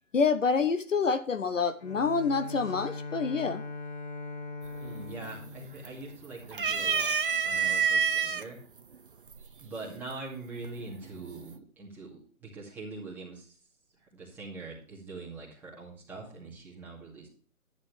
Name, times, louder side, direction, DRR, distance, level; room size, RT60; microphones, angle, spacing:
voice 1, 0.1-3.6, left 5 dB, 60° left, 11 dB, 0.9 m, -27 dB
Bowed string instrument, 1.8-6.9, left 3 dB, 40° left, 2.6 m, -41 dB
sound 1, 4.7-5.1 5.4-6.1 6.5-8.4 9.3-9.4 10.6-11.1, right 6 dB, 40° right, 0.6 m, -27 dB
voice 2, 4.8-7.2 7.4-8.6 9.6-13.6 14.0-17.3, right 3 dB, 5° right, -6 dB, 2.3 m, -43 dB
11.0 x 10.5 x 3.3 m, 0.42 s
figure-of-eight pair, 145°, 43 cm